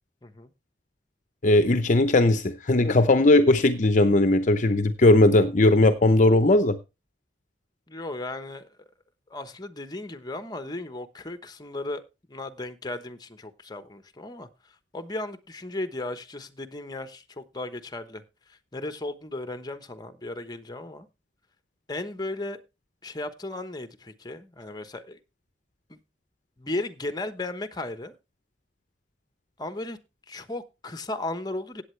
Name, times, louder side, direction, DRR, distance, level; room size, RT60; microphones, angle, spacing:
voice 1, 0.2-0.5 7.9-8.7 9.3-12.0 12.3-14.5 14.9-18.2 18.5-21.1 21.9-22.6 23.0-25.2 25.9-26.0 26.6-28.1 29.6-30.0 30.3-31.8, left 2 dB, 25° left, 1.1 m, -35 dB
voice 2, 1.4-6.8, left 2 dB, 45° left, 0.7 m, -19 dB
16.0 x 8.4 x 3.3 m
head